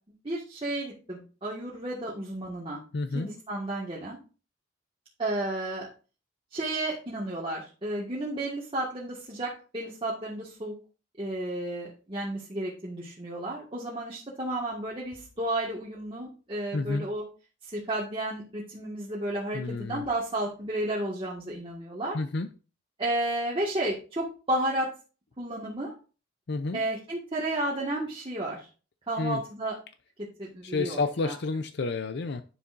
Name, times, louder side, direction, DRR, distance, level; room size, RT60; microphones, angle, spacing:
voice 1, 0.2-2.8 3.1-4.2 5.2-5.9 6.5-10.7 11.2-17.2 17.6-22.2 23.0-24.9 25.4-25.9 26.7-28.7 29.1-29.7 30.4-31.3, right 1 dB, 30° right, 1.7 m, -32 dB
voice 2, 2.9-3.3 16.7-17.1 19.5-20.0 22.1-22.5 26.5-26.8 29.2-29.4 30.6-32.4, left 3 dB, 65° left, 0.6 m, -30 dB
10.0 x 7.1 x 2.6 m
head